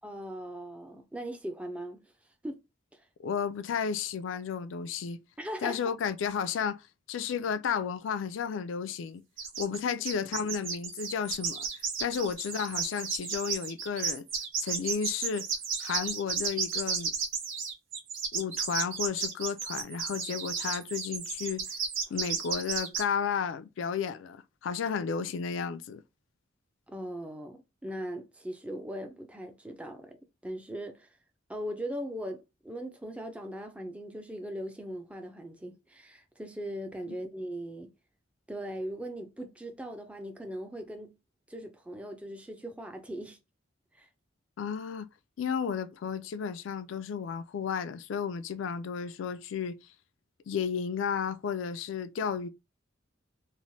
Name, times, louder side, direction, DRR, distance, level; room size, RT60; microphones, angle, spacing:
voice 1, 0.0-2.0 2.4-2.6 2.9-3.0 5.4-5.9 10.2-10.3 26.9-31.1 31.5-37.9 38.5-41.1 41.5-43.4 43.9-44.1, equal, 5° right, 0.4 m, -39 dB
voice 2, 3.2-5.2 5.6-6.8 7.1-9.2 9.6-11.7 12.0-14.2 14.6-15.5 15.8-17.1 18.3-21.7 22.1-26.0 37.1-37.2 44.6-45.1 45.4-49.8 50.5-52.5, left 6 dB, 75° left, 0.3 m, -33 dB
sound 1, 9.4-9.8 10.0-23.0, right 6 dB, 90° right, 0.8 m, -33 dB
3.1 x 2.1 x 2.6 m
head